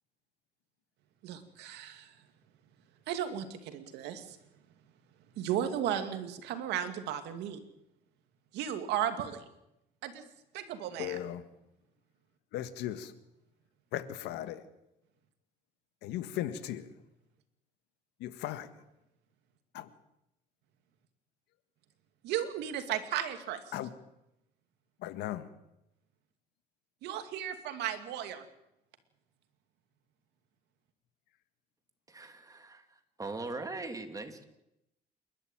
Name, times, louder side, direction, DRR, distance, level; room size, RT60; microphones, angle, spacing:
voice 1, 1.2-2.1 3.1-4.4 5.4-7.6 8.5-9.4 10.0-10.2 10.5-11.2 22.2-23.6 27.0-28.4, right 10 dB, 85° right, 2.5 m, -35 dB
voice 2, 11.0-11.5 12.5-13.1 13.9-14.6 16.0-16.9 18.2-18.8 19.7-19.9 23.7-23.9 25.0-25.5, left 12 dB, 85° left, 1.7 m, -37 dB
voice 3, 32.1-34.4, right 3 dB, 20° right, 2.9 m, -41 dB
28.5 x 12.0 x 9.2 m
cardioid pair, 110°, 17 cm